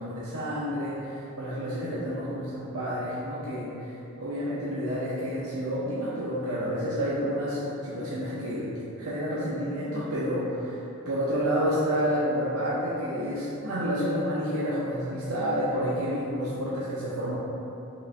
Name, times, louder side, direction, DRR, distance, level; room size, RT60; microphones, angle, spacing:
voice 1, 0.0-8.7 9.0-10.8 11.1-17.4, equal, 75° right, -8 dB, 0.6 m, -29 dB
4.8 x 2.5 x 3.3 m, 3.0 s
head